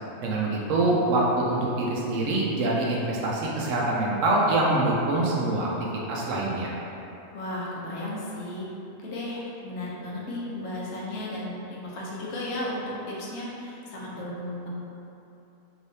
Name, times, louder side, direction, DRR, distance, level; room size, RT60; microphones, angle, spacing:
voice 1, 0.2-5.7 6.1-6.7, right 2 dB, 70° right, -4 dB, 0.9 m, -25 dB
voice 2, 7.3-8.7 9.0-14.7, left 1 dB, 75° left, -5 dB, 1.1 m, -34 dB
3.2 x 3.0 x 2.7 m, 2.9 s
omnidirectional pair, 1.4 m